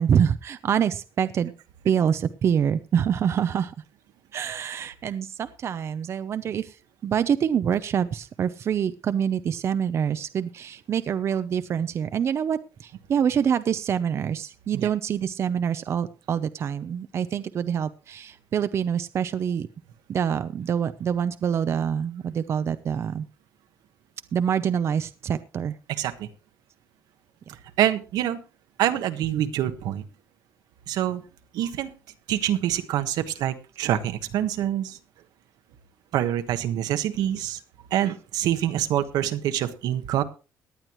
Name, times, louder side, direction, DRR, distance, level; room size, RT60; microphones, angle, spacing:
voice 1, 0.0-1.5 1.8-3.7 4.3-6.8 7.0-19.7 20.1-23.3 24.3-25.8, right 8 dB, 40° right, 12 dB, 0.6 m, -26 dB
voice 2, 26.0-26.3 27.8-28.4 28.8-30.0 30.9-31.2 31.5-31.9 32.3-35.0 36.1-37.6 37.9-40.2, right 11 dB, 85° right, 9 dB, 1.3 m, -25 dB
18.0 x 10.5 x 3.1 m, 0.32 s
cardioid pair, 145°, 7 cm